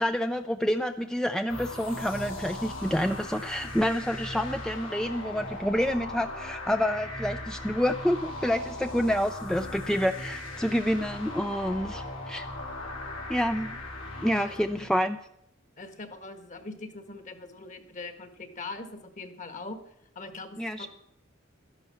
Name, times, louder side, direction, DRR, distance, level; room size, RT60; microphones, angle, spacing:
voice 1, 0.0-12.5 13.3-13.8 14.2-15.2 20.6-20.9, equal, 5° left, 8 dB, 0.4 m, -28 dB
sound 1, 1.5-15.0, left 2 dB, 80° left, 3.7 m, -38 dB
voice 2, 14.3-14.7 15.8-20.9, left 3 dB, 40° left, 9 dB, 1.6 m, -42 dB
12.5 x 11.0 x 7.0 m, 0.76 s
head